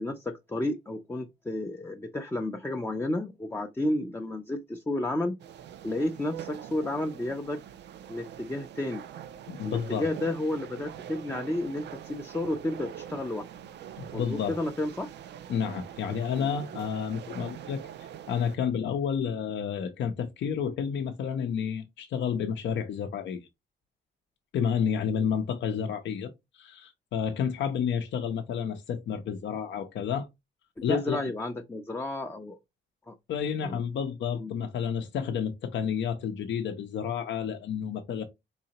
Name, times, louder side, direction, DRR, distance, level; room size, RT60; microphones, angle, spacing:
voice 1, 0.0-5.4 5.8-7.6 8.1-9.0 9.6-13.5 14.1-15.1 16.4-16.5 25.8-25.9 30.9-32.6 33.1-33.2 33.6-33.8 34.4-34.5, left 1 dB, 10° left, 0.5 m, -32 dB
sound 1, 5.4-18.6, right 10 dB, 60° right, 0.4 m, -44 dB
voice 2, 9.5-10.1 14.0-14.6 15.5-17.8 18.3-23.5 24.5-30.3 30.8-31.2 33.3-38.2, left 7 dB, 65° left, 0.6 m, -30 dB
4.0 x 2.8 x 2.8 m
cardioid pair, 90°, 20 cm